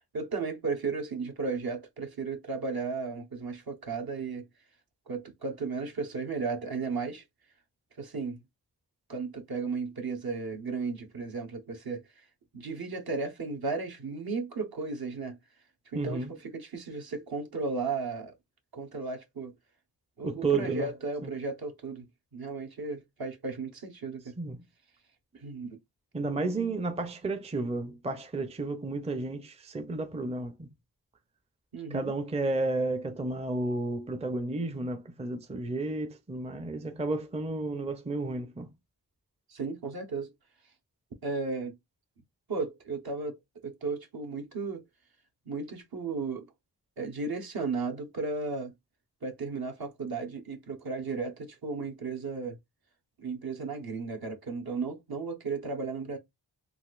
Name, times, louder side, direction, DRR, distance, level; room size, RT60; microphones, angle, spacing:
voice 1, 0.0-4.5 5.1-7.2 8.0-8.4 9.1-12.3 12.5-15.4 15.9-18.3 18.7-19.5 20.2-24.3 25.3-25.8 31.7-32.1 39.5-40.3 41.2-41.8 42.5-44.8 45.5-46.5 47.0-48.7 49.2-52.6 53.2-56.2, right 4 dB, 55° right, 0.9 m, -35 dB
voice 2, 15.9-16.3 20.2-20.9 21.2-21.3 24.4-24.6 26.1-30.7 31.9-38.7, right 2 dB, 15° right, 0.5 m, -32 dB
4.0 x 2.4 x 2.4 m
wide cardioid pair, 65°, 43 cm